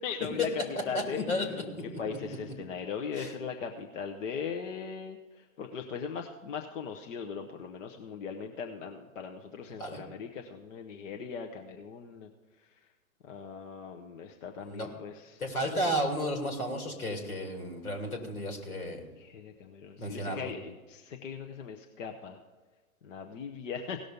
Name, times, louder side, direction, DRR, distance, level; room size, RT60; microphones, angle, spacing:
voice 1, 0.0-1.2 2.0-12.3 13.2-15.4 19.2-22.4 23.0-24.0, left 6 dB, 60° left, 3 dB, 1.1 m, -39 dB
voice 2, 0.9-2.0 3.2-3.3 9.8-10.0 14.6-14.9 15.4-19.0 20.0-20.5, equal, 90° left, 3 dB, 2.9 m, -33 dB
17.0 x 6.5 x 5.2 m, 1.3 s
hypercardioid pair, 115°, 43 cm